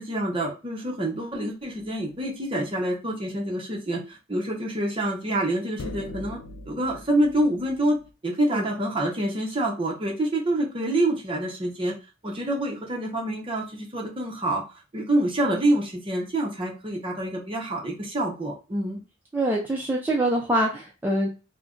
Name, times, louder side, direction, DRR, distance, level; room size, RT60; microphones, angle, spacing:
voice 1, 0.0-6.4 6.7-8.0 8.2-12.0 12.2-14.6 14.9-19.0, right 1 dB, 25° right, -1 dB, 0.7 m, -27 dB
sound 1, 1.7-2.1 5.8-8.1, left 2 dB, 85° left, 0.4 m, -40 dB
voice 2, 19.3-21.3, right 1 dB, 10° right, -3 dB, 0.3 m, -24 dB
2.4 x 2.1 x 3.6 m, 0.31 s
head